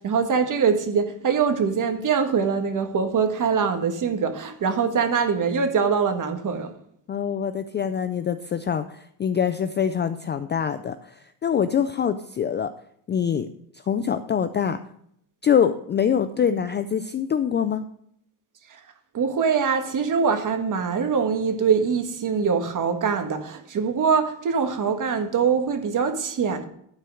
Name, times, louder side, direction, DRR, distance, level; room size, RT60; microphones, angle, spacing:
voice 1, 0.0-6.7 18.7-18.8 19.1-26.7, right 6 dB, 40° right, 1.6 m, -23 dB
voice 2, 7.1-12.7 13.1-13.5 13.9-14.8 15.4-17.8, left 8 dB, 25° left, 0.3 m, -24 dB
12.5 x 4.5 x 6.3 m
cardioid pair, 110°, 48 cm